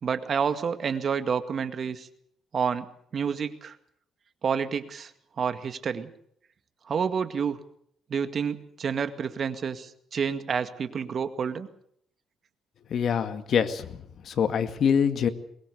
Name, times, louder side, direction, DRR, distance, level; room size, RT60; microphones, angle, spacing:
voice 1, 0.0-2.1 2.5-2.9 3.1-3.8 4.4-5.1 5.4-6.1 6.9-7.6 8.1-11.7, right 6 dB, 45° right, 10 dB, 2.0 m, -29 dB
voice 2, 12.9-14.0 14.3-15.3, left 7 dB, 55° left, 8 dB, 2.1 m, -25 dB
23.5 x 20.5 x 6.9 m, 0.67 s
cardioid pair, 115°, 0 cm